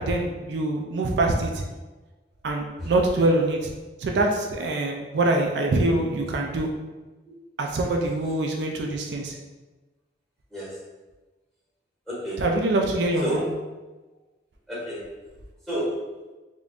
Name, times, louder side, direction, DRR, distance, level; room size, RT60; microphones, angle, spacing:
voice 1, 0.0-1.6 2.4-3.6 4.0-6.7 7.6-9.3 12.4-13.4, right 2 dB, 75° right, 1 dB, 0.4 m, -24 dB
voice 2, 12.1-12.5 13.2-13.5 14.7-15.1 15.6-16.1, equal, ahead, -9 dB, 1.5 m, -31 dB
5.0 x 2.6 x 2.4 m, 1.2 s
head